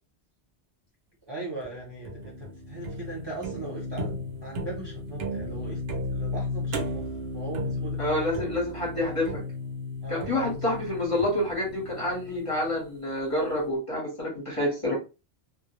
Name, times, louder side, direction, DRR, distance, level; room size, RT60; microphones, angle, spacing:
voice 1, 1.3-5.8 6.1-7.0 7.3-8.0 10.0-10.6, right 2 dB, 25° right, -4 dB, 0.8 m, -39 dB
sound 1, 1.6-12.8, left 1 dB, 70° right, 0.8 m, -34 dB
voice 2, 8.0-9.4 10.1-14.9, left 1 dB, 30° left, -4 dB, 0.9 m, -28 dB
2.2 x 2.1 x 2.9 m, 0.30 s
omnidirectional pair, 1.1 m